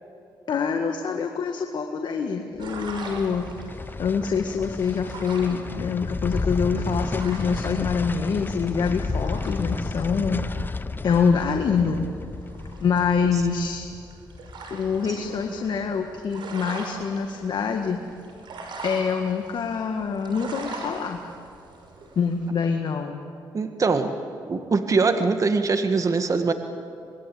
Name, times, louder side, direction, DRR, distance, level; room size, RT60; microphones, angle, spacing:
voice 1, 0.5-3.5 4.0-10.8 11.0-12.0 12.8-13.9 14.7-18.0 18.8-21.2 22.2-23.2, left 6 dB, 60° left, 3 dB, 1.9 m, -25 dB
sound 1, 2.6-15.8 16.1-16.2, left 3 dB, 25° left, 0.8 m, -32 dB
sound 2, 2.6-22.5, right 3 dB, 70° right, 5.9 m, -42 dB
voice 2, 23.5-24.2 24.5-26.5, right 4 dB, 40° right, 7 dB, 1.8 m, -22 dB
25.5 x 21.0 x 8.7 m, 2.6 s
supercardioid pair, 65°, 8 cm